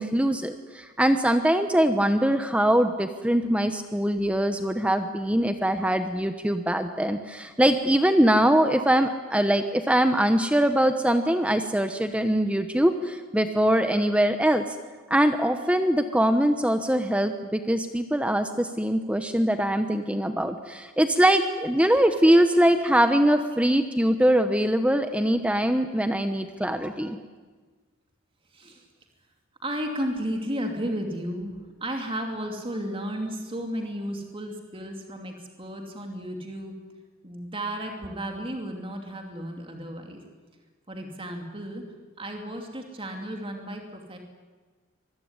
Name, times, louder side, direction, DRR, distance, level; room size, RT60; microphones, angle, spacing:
voice 1, 0.0-14.6 15.1-27.2, right 1 dB, 5° right, 8 dB, 1.0 m, -22 dB
voice 2, 23.0-23.4 28.5-28.9 29.6-36.7 37.2-40.2 40.9-41.8 42.2-44.2, equal, 25° right, 3 dB, 2.8 m, -34 dB
25.0 x 22.5 x 9.7 m, 1.4 s
head